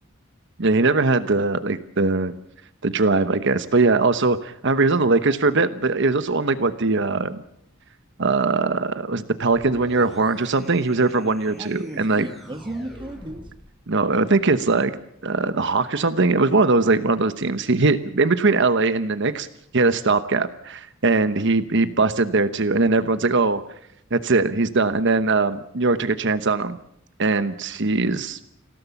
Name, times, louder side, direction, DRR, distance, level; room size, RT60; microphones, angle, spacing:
voice 1, 0.6-2.3 2.8-7.4 8.2-12.3 13.9-14.9 15.2-19.5 19.7-23.6 24.1-26.8 27.2-28.4, right 3 dB, 60° right, 11 dB, 1.0 m, -21 dB
sound 1, 9.5-13.7, equal, ahead, 5.1 m, -44 dB
voice 2, 11.5-13.5, right 1 dB, 25° right, 8 dB, 1.4 m, -34 dB
27.5 x 17.0 x 7.2 m, 0.74 s
head